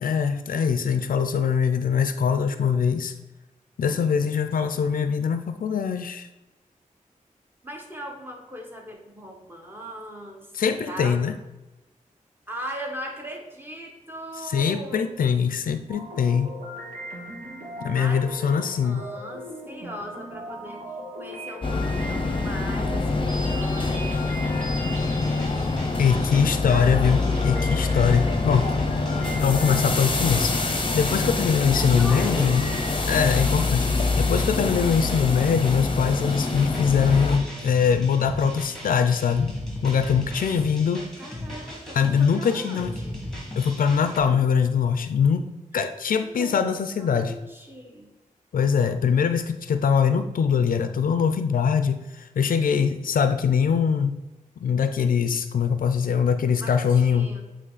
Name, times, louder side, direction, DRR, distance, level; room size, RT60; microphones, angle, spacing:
voice 1, 0.0-3.1 3.8-6.3 10.5-11.3 14.4-16.6 17.8-19.0 26.0-28.7 29.4-32.6 33.1-39.5 39.8-41.1 41.9-43.0 43.6-45.5 45.7-47.3 48.5-54.2 54.6-57.3, left 6 dB, 90° left, 10 dB, 0.4 m, -22 dB
voice 2, 3.9-4.2 7.6-10.5 10.9-11.3 12.5-15.1 17.9-20.9 21.2-24.2 26.1-27.1 31.8-32.5 40.1-40.2 41.2-43.2 45.7-45.9 46.2-46.7 47.0-48.1 56.6-57.4, equal, 15° right, 1 dB, 1.3 m, -39 dB
sound 1, 15.9-26.8 27.4-32.8, equal, 65° right, 1.5 m, -39 dB
sound 2, 21.6-37.4, left 3 dB, 35° left, 0.7 m, -25 dB
sound 3, 24.9-44.2, left 1 dB, 5° left, 1.9 m, -37 dB
7.6 x 3.1 x 4.0 m, 1.0 s
wide cardioid pair, 70°, 14 cm